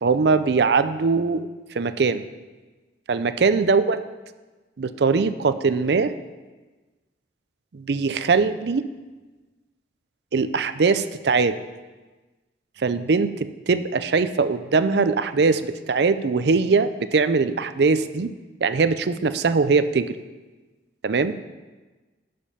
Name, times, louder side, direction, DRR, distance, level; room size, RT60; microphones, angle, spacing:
voice 1, 0.0-1.5 1.7-2.3 3.1-4.1 4.8-6.1 7.7-8.9 10.3-11.6 12.8-18.3 18.6-20.2 21.0-21.4, right 4 dB, 65° right, 12 dB, 0.5 m, -21 dB
12.0 x 5.2 x 5.6 m, 1.2 s
head